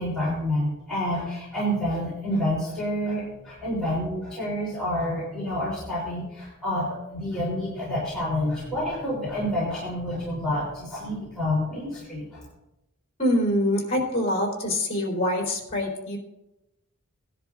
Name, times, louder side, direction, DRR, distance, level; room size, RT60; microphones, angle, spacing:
voice 1, 0.0-12.4, left 1 dB, 5° left, -10 dB, 3.5 m, -28 dB
voice 2, 13.2-16.2, left 1 dB, 30° left, -1 dB, 3.6 m, -25 dB
18.0 x 10.5 x 2.5 m, 0.94 s
head